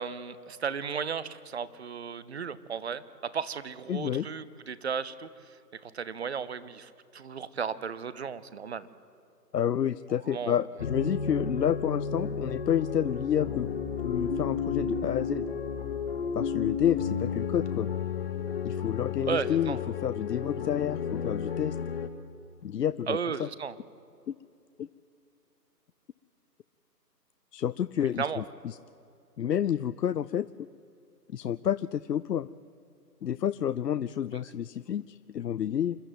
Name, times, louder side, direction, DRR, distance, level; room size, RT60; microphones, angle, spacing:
voice 1, 0.0-5.3 5.7-8.9 10.3-10.6 19.3-19.8 23.1-23.8 28.2-28.4, right 6 dB, 40° right, 17 dB, 0.8 m, -34 dB
voice 2, 3.9-4.3 9.5-13.7 14.0-15.5 16.3-17.9 18.6-21.8 22.6-23.5 24.3-24.4 24.8-24.9 27.5-28.8 29.4-30.5 31.3-32.5 33.2-36.0, left 9 dB, 75° left, 15 dB, 0.6 m, -29 dB
sound 1, 10.8-22.1, left 6 dB, 35° left, 1.2 m, -32 dB
27.5 x 11.5 x 9.3 m, 2.6 s
figure-of-eight pair, 150°, 50 cm